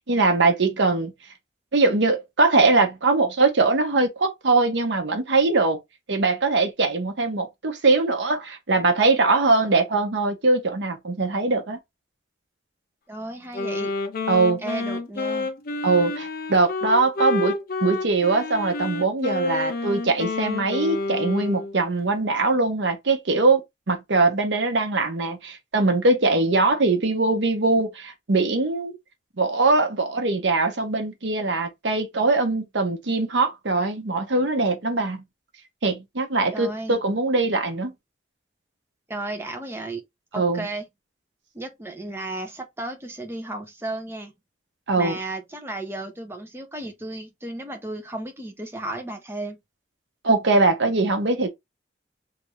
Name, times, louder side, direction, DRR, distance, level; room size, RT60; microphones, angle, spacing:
voice 1, 0.1-1.1 1.7-5.8 6.1-11.8 14.3-14.6 15.8-29.0 29.4-35.2 35.8-37.9 40.4-40.7 44.9-45.2 50.2-51.5, right 3 dB, 75° right, 0.8 m, -22 dB
voice 2, 13.1-13.9 14.6-15.5 36.5-37.0 39.1-40.0 40.3-40.9 41.5-44.3 45.0-49.6, right 2 dB, 15° right, 0.6 m, -34 dB
Wind instrument woodwind instrument, 13.5-21.7, left 3 dB, 50° left, 0.5 m, -29 dB
3.2 x 2.6 x 2.9 m
head